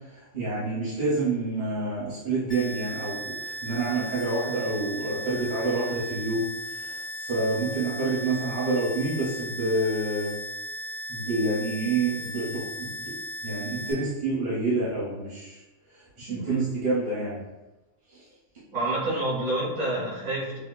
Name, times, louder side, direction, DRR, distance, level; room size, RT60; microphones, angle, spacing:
voice 1, 0.1-10.3 11.1-13.1 13.4-15.6 16.2-17.4 18.1-18.2, right 2 dB, 40° right, -9 dB, 1.0 m, -28 dB
sound 1, 2.5-13.9, equal, 50° left, 1.0 m, -36 dB
voice 2, 16.3-16.7 18.7-20.6, right 2 dB, 80° right, -6 dB, 2.0 m, -28 dB
5.3 x 2.1 x 2.2 m, 1.0 s
omnidirectional pair, 1.4 m